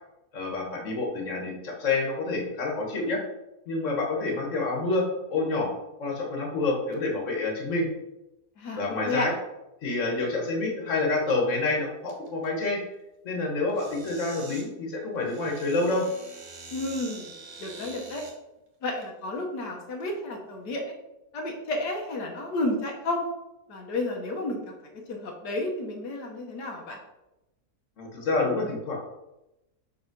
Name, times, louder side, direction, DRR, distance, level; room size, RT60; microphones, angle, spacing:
voice 1, 0.3-3.2 3.7-5.7 6.0-7.9 8.8-9.3 9.8-12.8 13.2-16.1 28.0-29.1, left 3 dB, 50° left, 0 dB, 1.7 m, -28 dB
sound 1, 11.3-11.8 12.1-12.5 13.7-14.7 15.2-18.3 19.0-19.1 19.9-20.2, right 3 dB, 45° right, 1.4 m, -45 dB
voice 2, 16.7-18.2 18.8-21.0 21.3-23.2 23.7-24.6 25.1-27.0, left 2 dB, 85° left, 1 dB, 1.7 m, -31 dB
5.5 x 4.4 x 5.9 m, 0.93 s
omnidirectional pair, 1.7 m